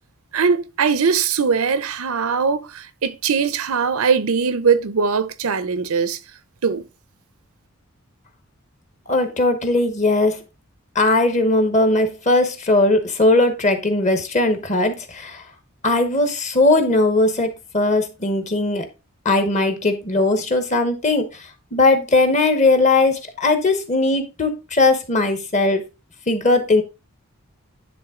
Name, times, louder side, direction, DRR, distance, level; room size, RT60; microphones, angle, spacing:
voice 1, 0.3-6.2 6.6-6.9, right 5 dB, 75° right, 0.6 m, -20 dB
voice 2, 9.1-10.4 10.9-15.4 15.8-17.5 17.7-18.9 19.2-21.2 21.7-25.8 26.3-26.8, left 2 dB, 30° left, 1.1 m, -18 dB
10.0 x 3.5 x 3.7 m
head